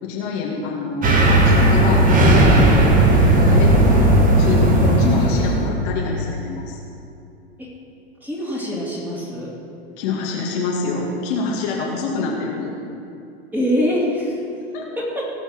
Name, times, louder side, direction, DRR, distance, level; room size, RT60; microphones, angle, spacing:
voice 1, 0.0-2.8 3.1-4.1 4.4-6.8 10.0-12.7 14.7-14.9, left 3 dB, 50° left, -2 dB, 2.3 m, -26 dB
sound 1, 1.0-5.7, right 1 dB, 25° right, 2.0 m, -15 dB
voice 2, 8.2-9.5 13.5-14.4 15.0-15.2, equal, 5° right, -5 dB, 3.7 m, -23 dB
18.0 x 7.0 x 6.3 m, 2.7 s
figure-of-eight pair, 85°, 32 cm